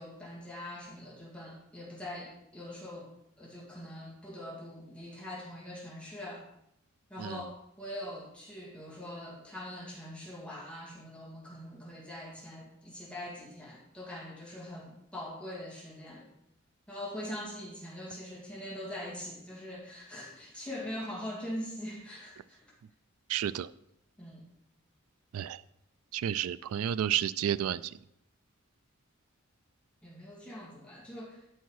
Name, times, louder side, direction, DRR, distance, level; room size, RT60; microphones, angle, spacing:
voice 1, 0.0-6.5 7.1-16.3 16.9-22.6 24.2-24.4 30.0-31.4, left 1 dB, 5° left, -5 dB, 2.1 m, -43 dB
voice 2, 23.3-23.7 25.3-25.6 26.1-28.0, right 10 dB, 85° right, 17 dB, 0.3 m, -31 dB
12.0 x 4.6 x 4.7 m, 0.78 s
head